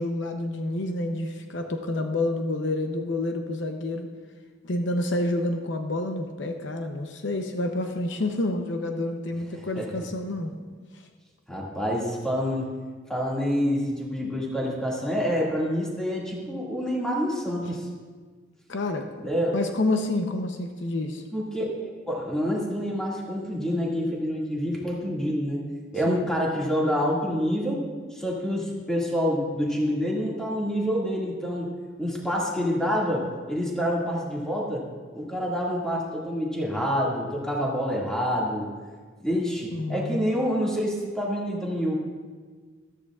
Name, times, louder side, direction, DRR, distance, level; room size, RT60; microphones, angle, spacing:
voice 1, 0.0-4.1 4.6-10.5 18.7-19.1 19.5-21.2 26.1-26.3 39.7-40.2, left 2 dB, 70° left, 5 dB, 0.8 m, -28 dB
voice 2, 11.5-12.7 13.1-17.9 19.2-19.6 21.3-25.6 25.9-31.7 32.0-34.9 35.1-38.7 39.2-41.9, equal, 5° left, -4 dB, 2.1 m, -27 dB
13.5 x 13.0 x 2.4 m, 1.5 s
head